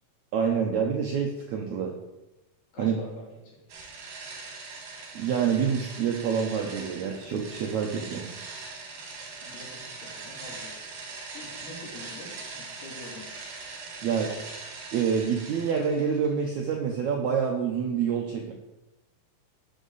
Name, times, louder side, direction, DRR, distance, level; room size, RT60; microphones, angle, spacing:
voice 1, 0.3-1.9 2.8-3.0 5.1-8.3 14.0-14.3 14.9-18.5, right 7 dB, 80° right, 1 dB, 1.6 m, -27 dB
voice 2, 2.7-3.6 9.4-10.8 11.3-13.3, left 2 dB, 85° left, -5 dB, 5.4 m, -45 dB
sound 1, 3.7-16.3, right 4 dB, 60° right, 3.5 m, -41 dB
10.0 x 8.3 x 4.0 m, 1.0 s
omnidirectional pair, 4.5 m